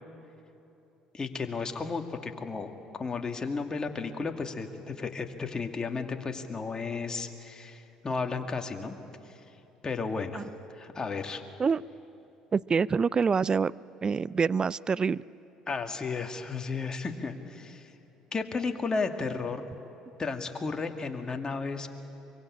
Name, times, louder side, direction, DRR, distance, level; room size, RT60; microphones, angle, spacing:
voice 1, 1.1-9.0 9.3-9.4 9.8-10.4 10.7-11.4 15.7-17.9 18.3-19.7 20.2-21.9, left 4 dB, 30° left, 4 dB, 2.3 m, -33 dB
voice 2, 12.5-13.7 14.0-15.2, right 5 dB, 35° right, 20 dB, 0.5 m, -26 dB
24.0 x 23.5 x 8.7 m, 3.0 s
hypercardioid pair, 55°, 3 cm